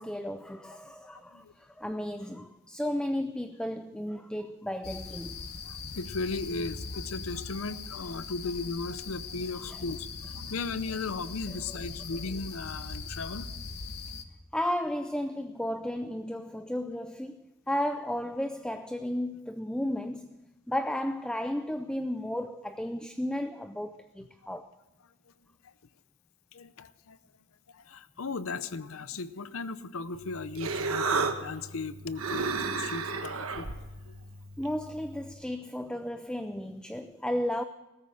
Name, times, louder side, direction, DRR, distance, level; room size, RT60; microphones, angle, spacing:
voice 1, 0.0-5.5 9.7-9.8 14.5-20.4 20.7-24.7 34.6-37.6, left 1 dB, 5° left, 0.4 m, -34 dB
voice 2, 1.1-1.5 5.6-10.1 10.3-13.5 26.5-27.2 27.7-33.7 34.1-34.2, left 3 dB, 75° left, 0.7 m, -36 dB
sound 1, 4.8-14.2, left 4 dB, 50° left, 1.2 m, -40 dB
Human voice, 30.1-35.3, right 4 dB, 80° right, 1.4 m, -33 dB
15.5 x 14.0 x 6.4 m
head